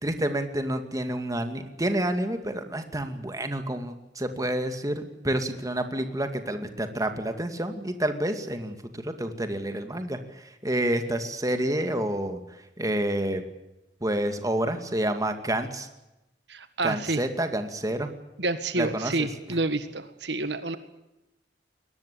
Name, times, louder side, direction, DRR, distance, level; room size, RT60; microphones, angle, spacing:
voice 1, 0.0-10.2 10.6-12.4 12.8-13.4 14.0-15.9 16.8-18.1 18.8-19.3, right 1 dB, 20° right, 7 dB, 2.4 m, -29 dB
voice 2, 16.5-17.2 18.4-20.8, right 2 dB, 75° right, 11 dB, 1.8 m, -29 dB
22.5 x 19.5 x 8.5 m, 0.95 s
head